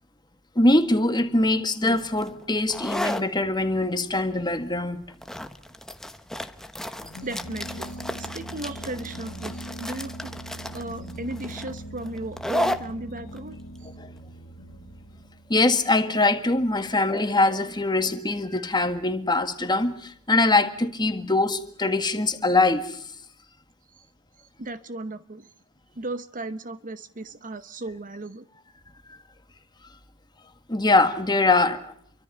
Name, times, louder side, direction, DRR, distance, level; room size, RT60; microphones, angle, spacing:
voice 1, 0.6-5.0 14.0-14.1 15.5-23.1 29.1-29.2 30.7-31.9, left 2 dB, 20° left, 1.9 m, -23 dB
sound 1, 1.8-15.2, left 1 dB, ahead, 1.0 m, -34 dB
sound 2, 6.9-15.7, right 1 dB, 65° left, 2.2 m, -41 dB
voice 2, 7.2-10.3 10.7-13.6 23.9-24.1 24.6-25.5 25.9-28.4, right 2 dB, 35° right, 0.9 m, -36 dB
28.0 x 24.0 x 5.6 m
head